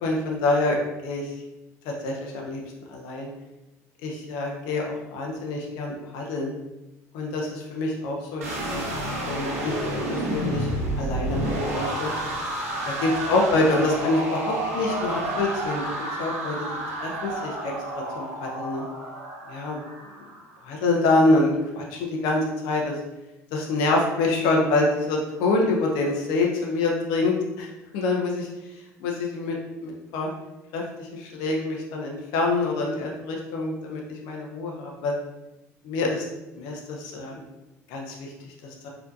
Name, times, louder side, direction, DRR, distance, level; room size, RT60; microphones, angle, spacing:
voice 1, 0.0-0.8 1.0-1.2 1.8-2.6 2.9-3.3 4.0-6.5 7.1-8.8 9.3-10.7 11.0-12.1 13.0-15.9 16.2-16.6 17.0-17.7 18.1-18.8 19.5-19.8 20.6-23.0 23.5-27.7 27.9-28.5 29.0-29.5 29.8-30.3 30.7-35.1 35.8-36.2 36.5-37.3 37.9-38.3 38.6-38.9, left 2 dB, 70° left, 0 dB, 0.6 m, -26 dB
sound 1, 8.4-20.5, right 1 dB, 90° right, 0.8 m, -30 dB
4.3 x 2.8 x 2.5 m, 0.98 s
hypercardioid pair, 60°, 8 cm